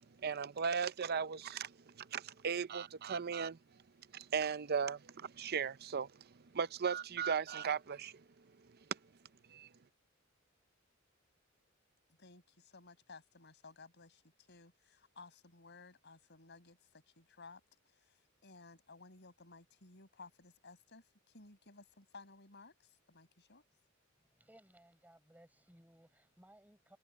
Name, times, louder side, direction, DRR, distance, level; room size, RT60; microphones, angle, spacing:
voice 1, 0.2-3.6 4.1-6.1 6.5-8.1 9.5-9.7, right 6 dB, 50° right, 0.6 m, -37 dB
voice 2, 12.2-17.6 17.9-23.6, left 3 dB, 55° left, 6.0 m, -57 dB
voice 3, 24.2-27.0, right 1 dB, 10° right, 7.5 m, -63 dB
open air
head